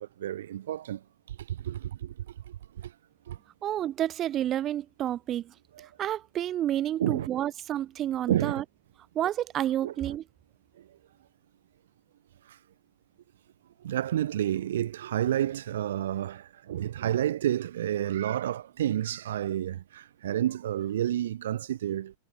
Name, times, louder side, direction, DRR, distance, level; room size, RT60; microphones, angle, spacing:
voice 1, 0.0-1.0 1.5-2.1 3.3-3.4 5.7-5.9 7.0-7.3 8.3-8.6 9.8-10.1 13.8-22.1, right 11 dB, 85° right, 0.7 m, -30 dB
voice 2, 3.6-5.5 6.0-8.6 9.1-10.2, right 12 dB, 20° right, 0.8 m, -30 dB
supercardioid pair, 170°, 0 cm